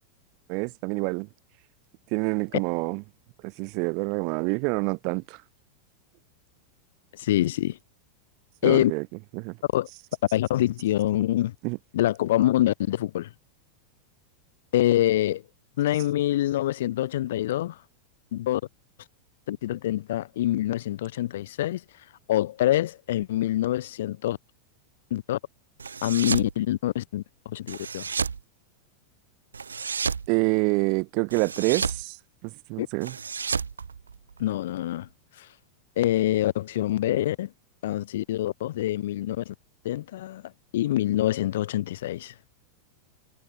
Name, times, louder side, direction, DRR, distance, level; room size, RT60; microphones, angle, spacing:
voice 1, 0.5-1.3 2.1-3.0 3.4-5.4 8.6-9.0 9.3-9.5 11.6-11.8 30.3-32.2 32.4-33.1, right 34 dB, 45° right, 1.9 m, -27 dB
voice 2, 7.1-7.8 8.6-8.9 9.7-9.9 10.3-11.5 11.9-13.3 14.7-15.4 15.8-17.8 18.3-18.6 19.5-21.8 22.3-24.4 25.1-25.4 26.0-28.1 32.8-32.9 34.4-35.1 35.4-35.5 36.0-37.5 37.8-39.5 39.8-40.4 40.7-42.3, left 14 dB, 55° left, 4.5 m, -25 dB
sound 1, 25.8-26.5 27.7-28.4 29.5-30.3 31.3-32.0 33.0-34.5, right 5 dB, 75° right, 1.1 m, -31 dB
figure-of-eight pair, 90°, 0 cm